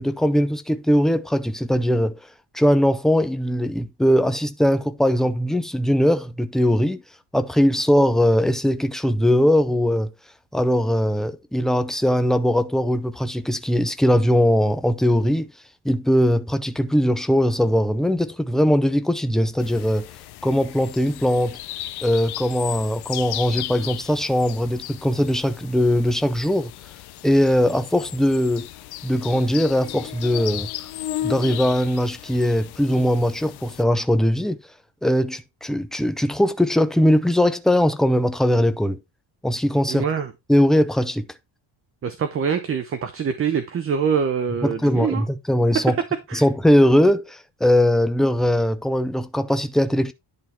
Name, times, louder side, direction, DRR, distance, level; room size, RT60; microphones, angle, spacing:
voice 1, 0.0-2.1 2.5-7.0 7.3-10.1 10.5-15.5 15.8-20.1 20.4-21.6 22.0-26.7 27.2-28.7 29.0-30.7 31.2-34.6 35.0-39.0 39.4-40.0 40.5-41.2 44.6-46.0 46.3-50.1, equal, ahead, 0.5 m, -20 dB
sound 1, 19.6-33.8, left 14 dB, 55° left, 0.7 m, -35 dB
voice 2, 39.9-40.3 42.0-45.2 45.7-45.8 46.3-46.4, right 6 dB, 30° right, 0.8 m, -24 dB
11.0 x 3.8 x 4.3 m
cardioid pair, 150°, 46 cm